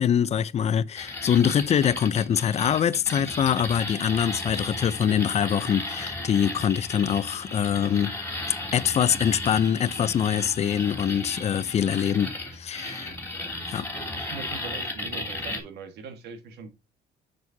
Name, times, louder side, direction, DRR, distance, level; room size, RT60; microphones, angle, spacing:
voice 1, 0.0-8.1 8.7-12.3 12.6-13.1 13.7-13.9, left 9 dB, 40° left, 0.5 m, -24 dB
sound 1, 1.0-15.6, left 2 dB, 10° left, 2.7 m, -35 dB
voice 2, 14.2-16.7, right 5 dB, 75° right, 1.6 m, -41 dB
7.2 x 6.2 x 2.7 m
cardioid pair, 110°, 17 cm